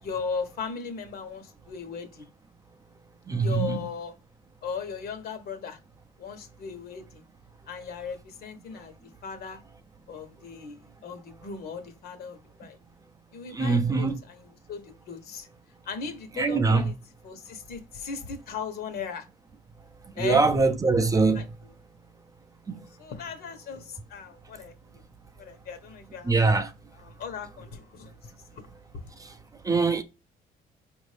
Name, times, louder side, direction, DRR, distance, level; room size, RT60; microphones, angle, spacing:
voice 1, 0.0-2.3 3.4-4.1 4.6-5.8 6.2-7.2 7.7-9.6 10.1-12.8 13.3-15.5 15.8-16.9 17.2-19.3 20.1-20.4 21.0-21.7 22.7-25.0 25.4-26.3 26.9-28.2 28.5-28.7 28.9-29.0, left 5 dB, 65° left, 1.1 m, -37 dB
voice 2, 3.3-3.8 13.5-14.2 16.4-16.9 20.2-21.4 22.7-22.8 26.3-26.7 29.2-29.3 29.6-30.0, right 4 dB, 20° right, 0.5 m, -23 dB
4.9 x 2.6 x 3.3 m
cardioid pair, 110°, 17 cm